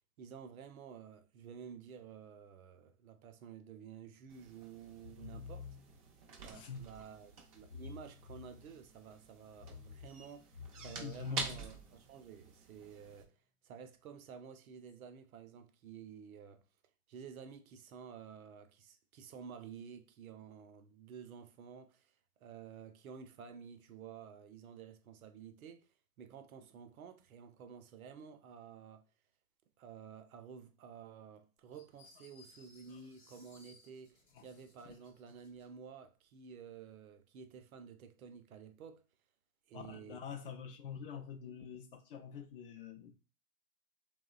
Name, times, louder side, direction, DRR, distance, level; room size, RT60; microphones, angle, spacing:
voice 1, 0.2-5.8 6.4-11.8 12.1-13.4 13.6-16.6 17.1-22.1 22.4-29.0 29.8-39.0 39.7-40.2, right 7 dB, 70° right, 0.6 m, -52 dB
sound 1, 4.3-13.2, right 4 dB, 25° right, 0.4 m, -48 dB
sound 2, 4.9-6.2 7.5-9.0 9.5-12.0, left 5 dB, 85° left, 0.7 m, -52 dB
voice 2, 6.5-7.0 11.0-11.5 32.9-33.0 34.3-34.5 39.7-43.1, left 7 dB, 40° left, 0.4 m, -45 dB
sound 3, 31.7-35.7, left 3 dB, 25° left, 0.9 m, -64 dB
2.9 x 2.1 x 2.3 m
hypercardioid pair, 125°, 45 cm